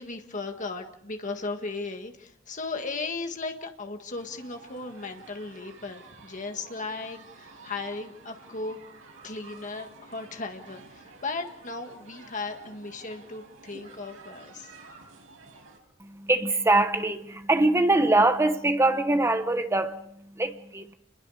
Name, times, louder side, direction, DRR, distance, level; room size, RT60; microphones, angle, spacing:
voice 1, 0.0-8.8 9.2-14.7, left 3 dB, 40° left, 1.8 m, -36 dB
sound 1, 4.1-15.8, right 3 dB, 90° right, 6.2 m, -50 dB
voice 2, 16.0-20.9, right 2 dB, 15° right, 1.2 m, -23 dB
29.5 x 22.0 x 5.0 m
head